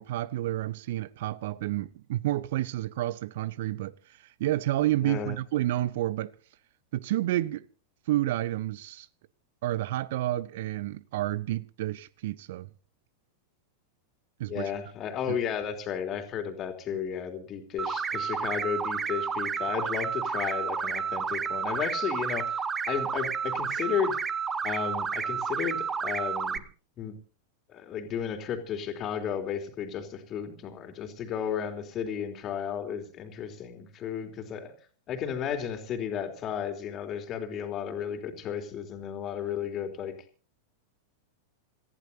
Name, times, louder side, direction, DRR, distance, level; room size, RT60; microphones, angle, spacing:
voice 1, 0.0-6.3 6.9-7.7 8.1-9.1 9.6-12.7 14.4-14.7 15.3-15.4, right 15 dB, 55° right, 0.7 m, -30 dB
voice 2, 5.0-5.3 14.5-24.2 24.6-26.6 27.0-27.2 27.7-34.7 35.1-40.1, left 8 dB, 30° left, 3.3 m, -33 dB
sound 1, 17.8-26.6, right 6 dB, 20° right, 1.1 m, -31 dB
27.5 x 15.0 x 2.8 m
figure-of-eight pair, 90°, 0 cm